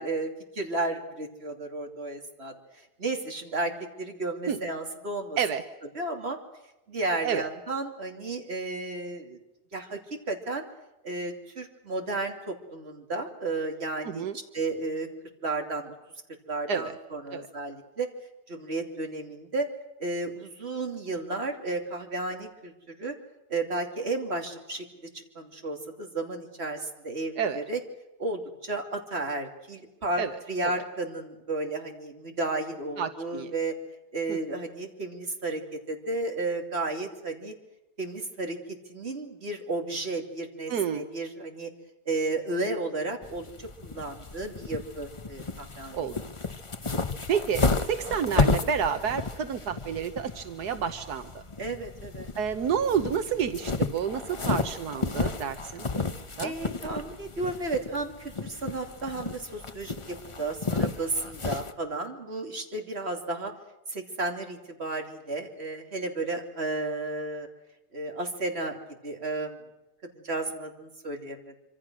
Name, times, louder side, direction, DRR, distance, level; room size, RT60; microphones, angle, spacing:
voice 1, 0.0-5.4 5.9-6.4 6.9-9.4 9.7-10.0 10.3-10.6 11.0-14.3 14.5-15.1 15.4-15.9 16.5-18.1 18.5-19.7 20.0-22.7 23.0-23.1 23.5-24.8 25.1-27.8 28.2-33.7 34.1-35.6 35.9-37.5 38.0-38.6 38.9-41.7 42.1-46.1 51.6-52.3 56.4-63.5 63.9-67.5 67.9-69.6 70.2-71.6, right 2 dB, 40° right, 3 dB, 3.1 m, -33 dB
voice 2, 14.0-14.4 16.7-16.9 17.3-17.5 27.4-27.6 30.2-30.3 30.6-30.7 33.0-33.5 34.3-34.4 40.7-41.0 45.9-46.1 47.3-51.3 52.4-55.8 56.4-56.5, right 7 dB, 80° right, 8 dB, 1.6 m, -29 dB
sound 1, 43.2-61.7, left 3 dB, 25° left, 0.9 m, -32 dB
26.0 x 25.5 x 6.3 m, 0.99 s
omnidirectional pair, 1.7 m